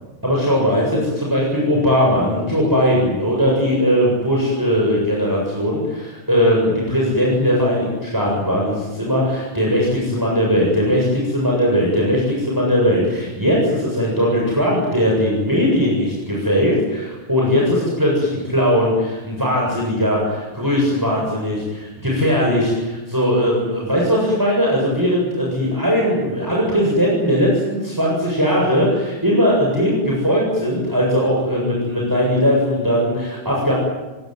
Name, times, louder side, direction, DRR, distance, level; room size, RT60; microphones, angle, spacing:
voice 1, 0.2-33.7, equal, 15° right, -3 dB, 7.6 m, -19 dB
28.0 x 19.5 x 9.4 m, 1.2 s
omnidirectional pair, 1.6 m